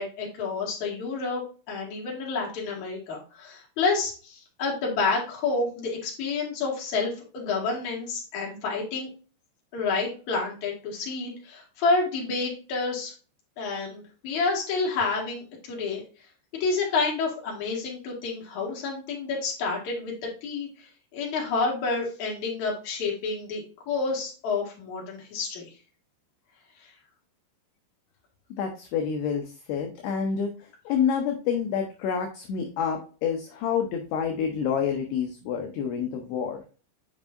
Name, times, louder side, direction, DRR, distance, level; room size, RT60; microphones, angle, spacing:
voice 1, 0.0-1.4 1.7-9.1 9.7-13.1 13.6-16.0 16.6-25.7 26.8-26.9, left 4 dB, 50° left, -2 dB, 2.9 m, -29 dB
voice 2, 28.6-30.5 30.9-36.6, left 7 dB, 75° left, 3 dB, 2.7 m, -28 dB
8.2 x 5.3 x 2.6 m, 0.36 s
omnidirectional pair, 5.3 m